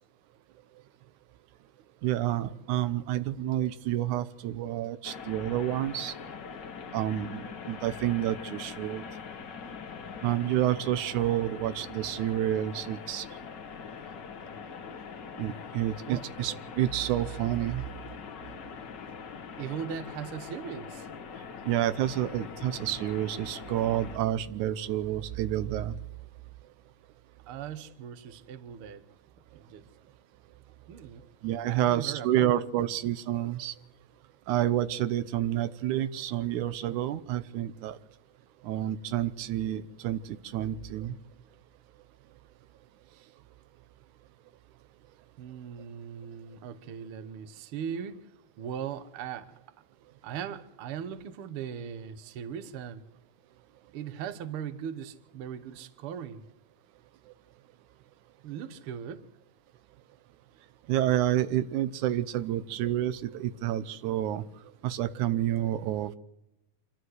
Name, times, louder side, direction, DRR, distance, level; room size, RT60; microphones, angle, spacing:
voice 1, 2.0-6.1 6.9-9.0 10.2-13.3 15.4-17.8 21.7-25.9 31.4-33.7 34.5-38.0 38.6-41.2 60.9-64.4 64.8-66.2, right 12 dB, 90° right, 2.3 m, -29 dB
sound 1, 5.0-24.2, left 6 dB, 50° left, 1.5 m, -43 dB
voice 2, 19.6-21.1 27.5-29.0 29.5-29.8 30.9-31.2 31.6-32.8 43.1-43.3 45.4-48.3 48.6-49.6 50.2-53.0 53.9-56.4 58.4-59.3, right 8 dB, 60° right, 1.7 m, -39 dB
26.0 x 13.0 x 7.9 m
omnidirectional pair, 3.4 m